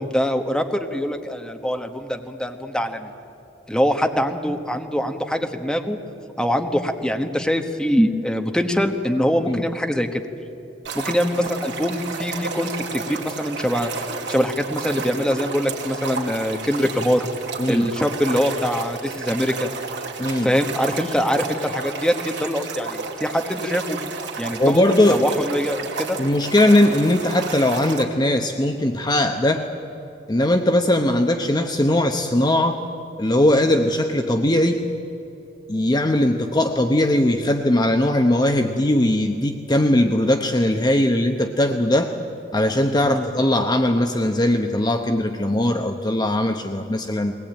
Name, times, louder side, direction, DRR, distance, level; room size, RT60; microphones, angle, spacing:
voice 1, 0.0-3.1 3.7-6.0 6.4-10.2 10.9-13.9 14.3-17.3 17.7-19.7 20.4-24.1 24.4-24.8 25.1-26.2 43.0-43.3, equal, 5° left, 5 dB, 1.2 m, -23 dB
sound 1, 10.8-28.0, right 4 dB, 65° right, 2.5 m, -32 dB
voice 2, 20.2-20.5 24.5-25.2 26.2-29.7 30.3-32.8 33.2-34.8 35.7-42.1 42.5-47.4, left 1 dB, 20° left, 5 dB, 0.9 m, -19 dB
21.0 x 19.5 x 8.9 m, 2.9 s
head